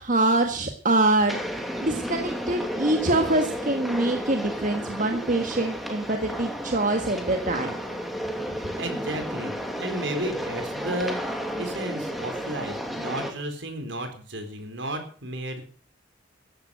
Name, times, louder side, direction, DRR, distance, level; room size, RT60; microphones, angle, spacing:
voice 1, 0.0-7.8, right 2 dB, 40° right, 5 dB, 1.6 m, -24 dB
sound 1, 1.3-13.3, equal, ahead, 2.5 m, -32 dB
voice 2, 8.6-11.2 11.6-15.6, right 1 dB, 65° right, 6 dB, 4.3 m, -33 dB
14.5 x 11.5 x 6.4 m, 0.44 s
head